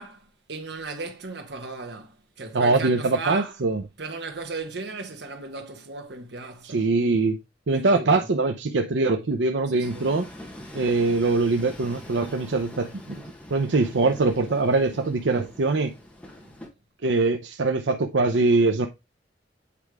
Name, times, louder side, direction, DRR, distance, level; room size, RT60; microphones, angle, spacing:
voice 1, 0.0-3.5 4.0-6.9 7.7-8.3 9.7-10.0, right 3 dB, 70° right, 1.5 m, -36 dB
voice 2, 2.5-3.8 6.6-7.4 7.7-10.3 10.7-13.2 13.5-15.9 17.0-18.9, right 3 dB, 85° right, 0.7 m, -23 dB
Train, 9.8-16.7, left 1 dB, 5° left, 1.5 m, -43 dB
8.5 x 3.4 x 4.8 m
head